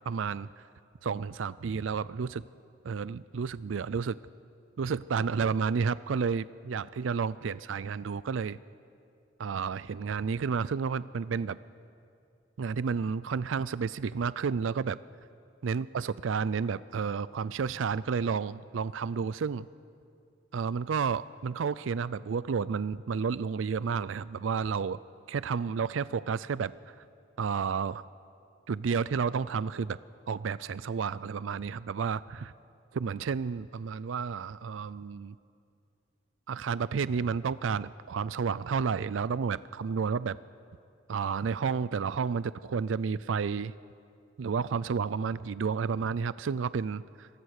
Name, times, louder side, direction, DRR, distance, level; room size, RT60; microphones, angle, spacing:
voice 1, 0.1-0.5 1.0-2.5 2.8-4.2 4.8-8.6 9.4-11.6 12.6-15.0 15.6-19.7 20.5-25.0 25.3-26.7 27.4-28.1 28.7-30.0 30.3-32.5 32.9-35.4 36.5-40.4 41.1-43.7 44.4-47.3, right 5 dB, 85° right, 17 dB, 0.4 m, -31 dB
25.5 x 19.0 x 6.6 m, 2.4 s
head